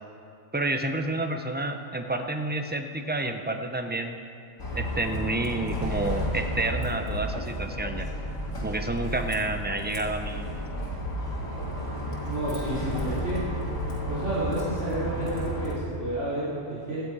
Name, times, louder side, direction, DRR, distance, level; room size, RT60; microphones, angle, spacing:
voice 1, 0.5-4.2 4.7-8.1 8.6-10.5, right 2 dB, 10° right, 6 dB, 0.5 m, -29 dB
Bus, 4.6-15.7, equal, 75° left, 2.5 m, -32 dB
voice 2, 12.2-13.4 14.1-17.0, right 1 dB, 60° right, -9 dB, 4.0 m, -30 dB
17.0 x 11.5 x 4.8 m, 2.6 s
omnidirectional pair, 1.4 m